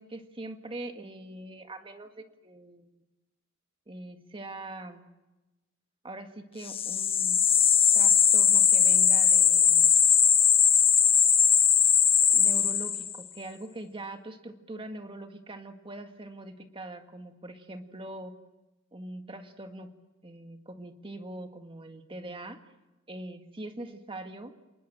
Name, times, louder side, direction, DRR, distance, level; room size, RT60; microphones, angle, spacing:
voice 1, 0.0-2.9 3.9-5.1 6.0-7.4 7.9-9.9 12.3-18.4 18.9-19.9 20.2-22.6 23.1-24.5, right 1 dB, 25° right, 6 dB, 1.9 m, -42 dB
sound 1, 6.7-13.2, left 7 dB, 25° left, 0.8 m, -20 dB
28.0 x 19.5 x 7.7 m, 1.1 s
head